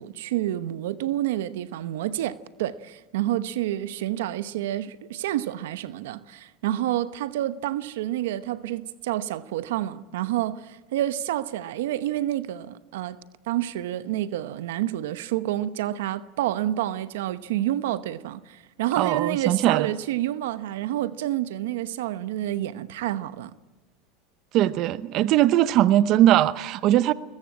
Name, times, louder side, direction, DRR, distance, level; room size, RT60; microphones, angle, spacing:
voice 1, 0.0-13.2 13.5-23.5, right 13 dB, 85° right, 0.9 m, -29 dB
voice 2, 19.0-19.9 24.5-27.1, right 13 dB, 55° right, 0.8 m, -20 dB
22.0 x 21.0 x 8.7 m
supercardioid pair, 105°, 0 cm